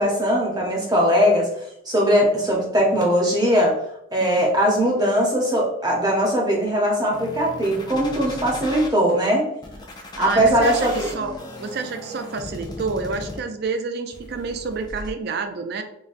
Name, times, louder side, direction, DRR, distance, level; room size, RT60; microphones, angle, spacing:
voice 1, 0.0-1.5 1.9-3.7 4.1-9.5 10.2-11.1, equal, 20° right, -2 dB, 0.7 m, -20 dB
sound 1, 7.1-8.9 9.6-13.6 14.1-15.1, left 1 dB, 20° left, 0.4 m, -36 dB
voice 2, 10.2-15.8, right 4 dB, 55° right, 7 dB, 0.4 m, -29 dB
3.9 x 2.2 x 2.5 m, 0.76 s
head